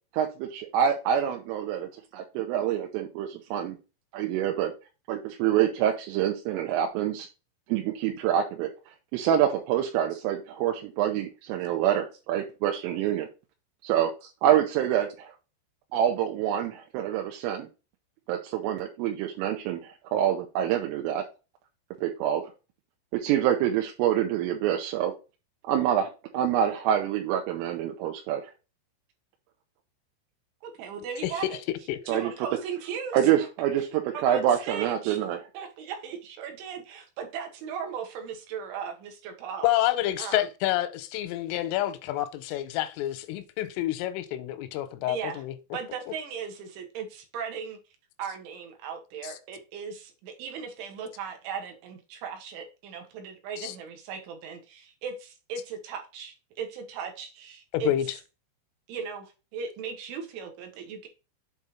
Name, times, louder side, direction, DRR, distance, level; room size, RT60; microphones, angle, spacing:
voice 1, 0.1-3.8 4.1-4.7 5.1-7.3 7.7-13.3 13.8-14.1 14.4-15.3 15.9-17.7 18.3-21.2 22.0-22.4 23.1-25.1 25.7-28.5 32.1-32.3 33.1-35.4, right 10 dB, 90° right, 3.4 m, -26 dB
voice 2, 30.6-31.6 32.1-33.3 33.8-33.9 34.1-35.2 35.5-39.7 40.2-40.5 45.1-45.4 45.7-47.8 48.2-57.9 58.9-61.1, right 6 dB, 75° right, 3.5 m, -37 dB
voice 3, 39.6-45.5 49.2-49.3 53.6-53.7 57.7-58.1, left 14 dB, 90° left, 3.3 m, -28 dB
7.9 x 3.7 x 4.3 m
omnidirectional pair, 5.8 m